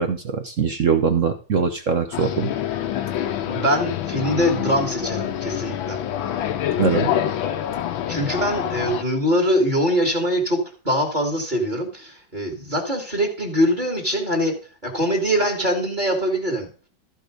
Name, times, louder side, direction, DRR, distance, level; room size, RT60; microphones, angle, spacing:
voice 1, 0.0-2.5 6.8-7.3, right 6 dB, 55° right, 6 dB, 0.8 m, -22 dB
sound 1, 2.1-9.0, left 10 dB, 75° left, 1.6 m, -26 dB
voice 2, 3.5-6.0 8.1-14.5 14.8-16.7, equal, 20° right, 2 dB, 2.2 m, -23 dB
14.0 x 4.8 x 5.0 m, 0.38 s
omnidirectional pair, 2.2 m